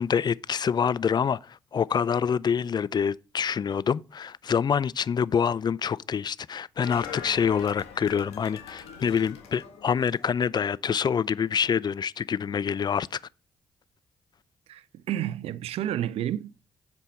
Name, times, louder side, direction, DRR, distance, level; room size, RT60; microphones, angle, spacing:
voice 1, 0.0-13.2, left 7 dB, 45° left, 0.4 m, -26 dB
sound 1, 6.8-10.6 11.0-11.1, left 7 dB, 80° left, 1.6 m, -42 dB
voice 2, 14.7-16.7, right 11 dB, 70° right, 0.4 m, -31 dB
7.5 x 5.2 x 5.5 m
hypercardioid pair, 45°, 10 cm